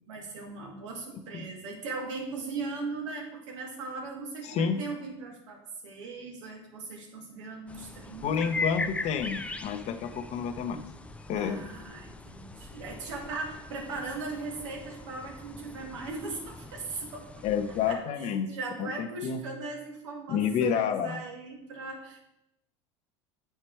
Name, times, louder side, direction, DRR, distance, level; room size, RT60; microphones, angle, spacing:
voice 1, 0.1-8.6 11.3-22.2, right 3 dB, 75° right, 1 dB, 1.8 m, -39 dB
voice 2, 4.4-4.8 8.2-10.8 11.3-11.7 17.4-18.5 18.8-19.4 20.3-21.2, left 7 dB, 45° left, 7 dB, 0.8 m, -29 dB
sound 1, 7.7-18.0, left 3 dB, 10° left, 0.4 m, -40 dB
7.5 x 4.6 x 4.6 m, 0.82 s
hypercardioid pair, 95°, 16 cm